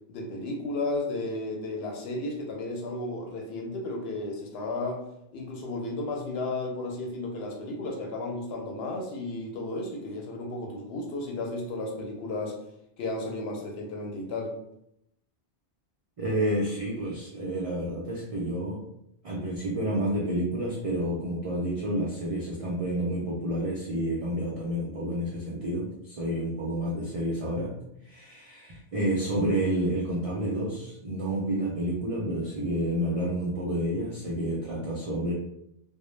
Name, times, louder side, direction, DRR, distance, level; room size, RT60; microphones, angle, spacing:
voice 1, 0.1-5.0 5.3-12.6 13.0-14.5, left 2 dB, 70° left, 1 dB, 0.8 m, -33 dB
voice 2, 16.2-18.8 19.2-27.7 28.0-35.3, right 1 dB, 65° right, -4 dB, 0.3 m, -29 dB
2.0 x 2.0 x 3.1 m, 0.79 s
omnidirectional pair, 1.1 m